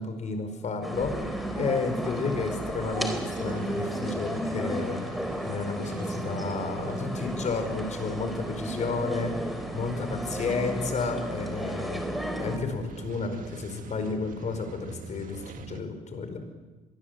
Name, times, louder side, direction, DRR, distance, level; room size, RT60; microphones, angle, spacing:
voice 1, 0.0-5.1 5.4-9.4 9.7-12.0 12.4-16.4, left 4 dB, 45° left, 7 dB, 5.0 m, -32 dB
sound 1, 0.8-12.6, equal, ahead, 3.9 m, -33 dB
sound 2, 0.9-15.8, right 6 dB, 50° right, 1.8 m, -43 dB
23.5 x 20.0 x 8.2 m, 1.3 s
cardioid pair, 110°, 17 cm